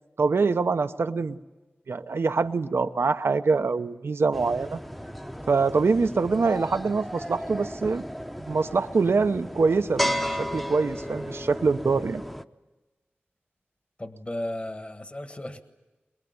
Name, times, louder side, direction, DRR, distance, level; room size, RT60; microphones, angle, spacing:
voice 1, 0.2-1.4 1.9-4.8 5.5-8.0 8.4-12.2, right 4 dB, 85° right, 9 dB, 0.9 m, -24 dB
sound 1, 4.3-12.4, equal, 5° left, 0.9 m, -34 dB
voice 2, 14.0-15.6, left 1 dB, 30° left, 8 dB, 1.6 m, -35 dB
23.0 x 22.0 x 9.6 m, 1.1 s
wide cardioid pair, 55°, 4 cm